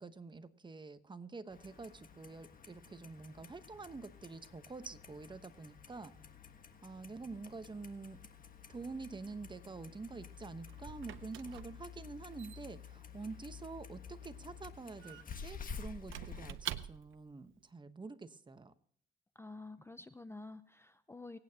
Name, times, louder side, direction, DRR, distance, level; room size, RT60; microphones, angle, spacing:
voice 1, 0.0-6.1 6.8-8.2 8.7-18.7, right 3 dB, 25° right, 11 dB, 1.0 m, -47 dB
Clock, 1.5-16.5, left 6 dB, 45° left, 1.5 m, -51 dB
Squeak / Wood, 10.2-17.3, right 13 dB, 80° right, 0.7 m, -48 dB
voice 2, 19.4-21.4, left 2 dB, 10° left, 12 dB, 0.6 m, -49 dB
24.5 x 8.9 x 2.8 m, 0.63 s
cardioid pair, 90°, 20 cm